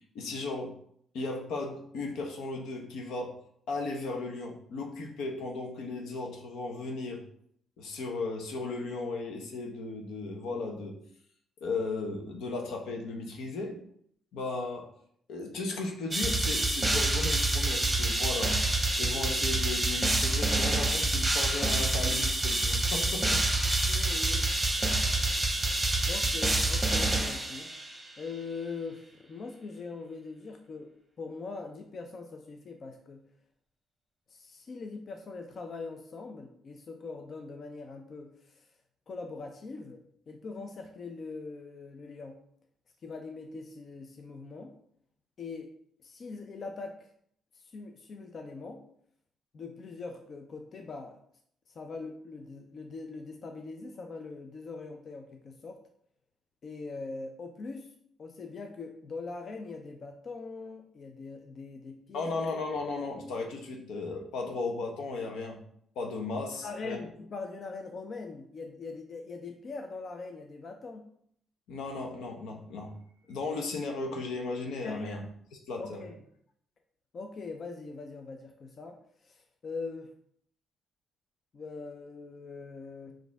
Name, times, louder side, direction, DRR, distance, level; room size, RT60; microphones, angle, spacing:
voice 1, 0.1-0.8 1.1-3.3 3.7-7.2 7.8-11.0 11.6-13.8 14.3-14.9 15.3-18.6 19.0-23.4 62.1-65.6 66.0-67.0 71.7-72.9 73.3-75.2 75.7-76.0, left 3 dB, 85° left, 2 dB, 0.8 m, -35 dB
sound 1, 16.1-28.0, right 2 dB, 20° right, 0.9 m, -27 dB
voice 2, 23.8-24.5 26.1-27.7 28.2-30.9 31.2-33.3 34.3-38.6 39.1-40.0 40.3-42.4 43.0-44.7 45.4-45.7 46.0-47.1 47.6-48.8 49.5-51.2 51.7-55.8 56.6-57.9 58.2-62.4 66.5-71.1 74.8-75.3 75.8-76.2 77.1-80.1 81.5-83.1, left 4 dB, 50° left, 4 dB, 0.5 m, -42 dB
5.0 x 2.6 x 3.4 m, 0.67 s
cardioid pair, 90°, 0 cm